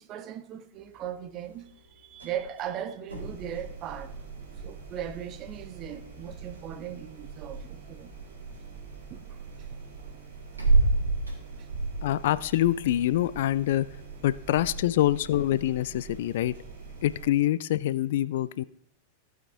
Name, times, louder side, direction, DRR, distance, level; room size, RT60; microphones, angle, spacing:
voice 1, 0.0-4.2 4.6-8.1 9.1-9.8, right 9 dB, 35° right, 0.7 m, -38 dB
sound 1, 0.7-17.4, right 3 dB, 80° right, 2.5 m, -34 dB
sound 2, 3.1-17.3, right 5 dB, 55° right, 1.7 m, -44 dB
voice 2, 12.0-13.9 14.2-16.5 17.0-18.6, left 13 dB, 55° left, 0.3 m, -25 dB
15.5 x 5.8 x 3.8 m
figure-of-eight pair, 90°, 0 cm